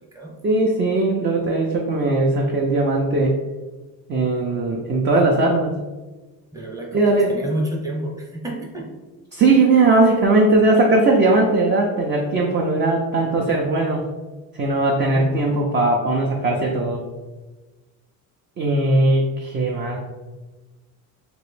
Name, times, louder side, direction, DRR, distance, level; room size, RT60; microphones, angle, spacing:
voice 1, 0.4-3.4 4.1-5.8 6.9-7.4 9.3-14.1 14.6-17.0 18.6-20.0, right 2 dB, 30° right, -1 dB, 0.4 m, -19 dB
voice 2, 6.5-8.9 15.1-15.3, right 1 dB, 10° right, -1 dB, 0.7 m, -29 dB
3.0 x 2.9 x 3.1 m, 1.2 s
cardioid pair, 125°, 38 cm